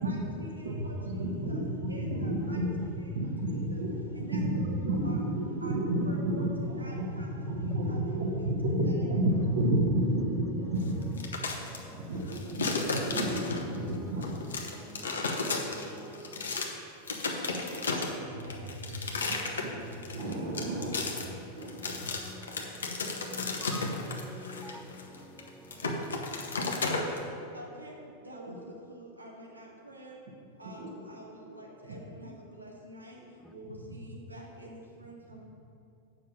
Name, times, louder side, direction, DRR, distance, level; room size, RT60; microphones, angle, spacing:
voice 1, 0.0-1.3 1.9-2.6 3.7-3.8 4.2-4.6 5.0-5.2 5.6-5.8 6.1-6.5 6.8-7.3 7.9-8.0 8.9-9.1 17.3-17.5 18.0-19.0 19.3-19.5 27.5-27.9 28.3-28.5 28.9-30.1 30.6-30.8 31.1-33.2 33.5-35.5, right 1 dB, 85° right, 1.7 m, -48 dB
voice 2, 1.0-2.7 3.1-11.1 12.1-14.2 19.5-19.7 20.1-20.9 21.6-21.7 22.0-22.1 28.5-28.6 30.6-31.0 31.4-31.5 31.9-32.0, right 1 dB, 60° right, 1.4 m, -31 dB
sound 1, 11.0-11.8 12.2-13.8 14.2-16.7 17.1-27.2, left 3 dB, 70° left, 1.0 m, -33 dB
voice 3, 11.2-13.3 13.7-16.6 19.3-19.9 20.2-26.8 33.4-33.5, left 1 dB, 5° right, 0.4 m, -50 dB
7.3 x 5.5 x 7.3 m
figure-of-eight pair, 90°, 0 cm